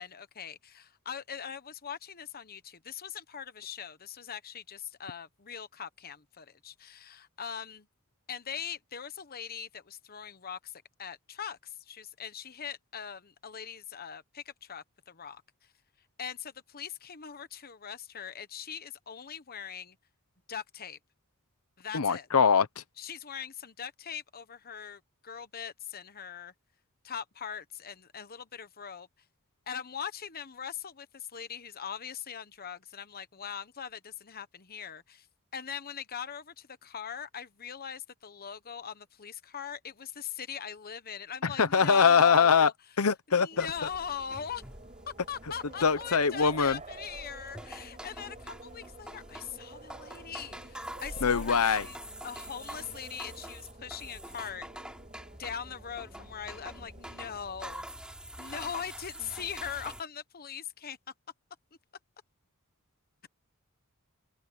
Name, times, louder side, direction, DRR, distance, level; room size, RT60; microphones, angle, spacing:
voice 1, 0.0-7.9 8.3-15.4 16.2-20.0 20.5-21.0 21.8-22.3 23.0-26.5 27.0-29.1 29.7-35.3 35.5-42.7 43.3-44.6 45.3-52.0 52.2-54.7 55.4-57.8 58.4-61.0, left 7 dB, 45° left, 1.1 m, -41 dB
voice 2, 21.9-22.8 41.4-42.7 43.0-43.7 45.8-46.8 51.2-51.9, left 6 dB, 85° left, 0.8 m, -23 dB
sound 1, 43.5-57.6, right 3 dB, 35° right, 6.1 m, -51 dB
sound 2, 43.6-60.0, right 1 dB, 5° right, 3.7 m, -46 dB
head